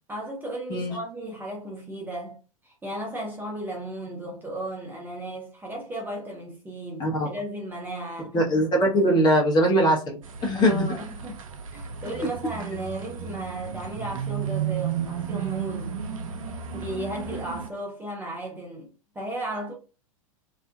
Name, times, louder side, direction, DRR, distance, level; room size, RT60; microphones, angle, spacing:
voice 1, 0.1-2.4 2.6-8.4 10.5-11.4 11.7-15.9 16.7-18.9 19.1-19.7, right 1 dB, 10° right, 0.6 m, -35 dB
voice 2, 8.3-10.9, equal, 25° left, 0.9 m, -21 dB
sound 1, 10.2-17.7, right 8 dB, 70° right, 0.5 m, -33 dB
2.6 x 2.4 x 2.2 m
figure-of-eight pair, 95°, 18 cm